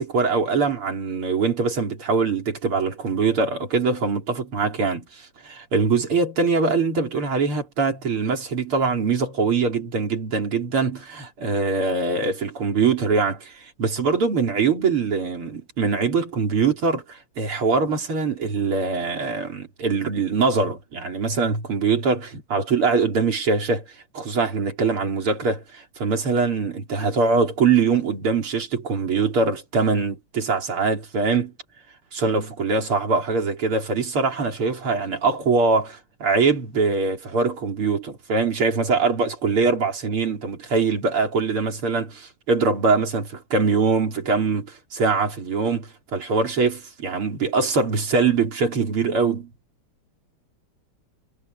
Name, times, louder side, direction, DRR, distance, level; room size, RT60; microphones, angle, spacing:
voice 1, 0.0-23.8 24.1-31.5 32.1-49.5, right 4 dB, 75° right, 4.5 m, -23 dB
omnidirectional pair, 2.4 m